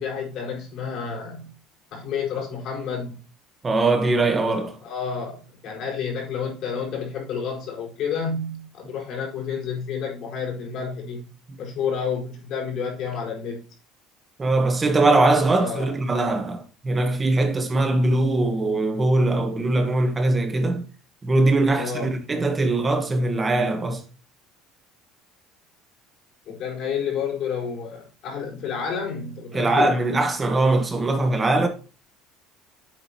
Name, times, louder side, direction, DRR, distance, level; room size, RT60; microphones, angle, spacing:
voice 1, 0.0-1.5 1.9-3.2 4.8-11.3 11.6-13.6 15.6-16.0 21.7-22.1 26.5-29.9, left 6 dB, 60° left, 4.8 m, -30 dB
voice 2, 3.6-4.8 11.5-11.6 14.4-20.9 21.2-24.0 29.5-31.7, right 2 dB, 20° right, 1.4 m, -21 dB
9.6 x 7.9 x 3.0 m
supercardioid pair, 110°, 0 cm